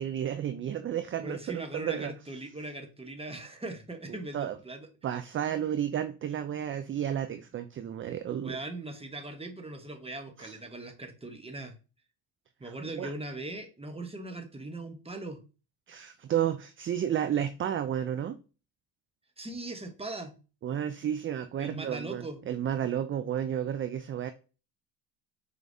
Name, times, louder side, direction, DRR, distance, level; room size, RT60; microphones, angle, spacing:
voice 1, 0.0-2.1 4.3-4.6 5.0-8.6 10.4-10.5 12.6-13.1 15.9-18.4 20.6-24.3, right 10 dB, 30° right, 10 dB, 0.3 m, -32 dB
voice 2, 1.2-4.9 8.4-11.7 12.6-15.4 19.4-20.3 21.6-22.4, right 2 dB, 10° right, 5 dB, 1.1 m, -40 dB
4.6 x 3.3 x 2.6 m, 0.32 s
hypercardioid pair, 55°, 49 cm